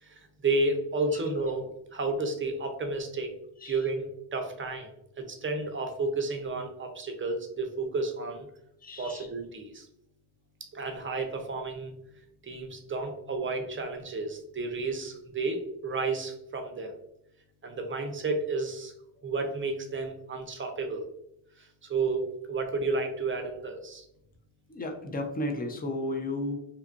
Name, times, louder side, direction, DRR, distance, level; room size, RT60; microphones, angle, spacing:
voice 1, 0.0-1.6 1.9-3.3 3.6-8.5 9.0-9.9 10.6-11.9 12.4-16.9 17.6-18.9 19.2-21.0 21.6-24.1, right 3 dB, 25° right, 4 dB, 0.6 m, -32 dB
voice 2, 8.8-9.3 19.2-19.3 24.7-26.5, left 1 dB, 20° left, 4 dB, 0.5 m, -33 dB
2.8 x 2.4 x 2.3 m, 0.79 s
cardioid pair, 80°, 47 cm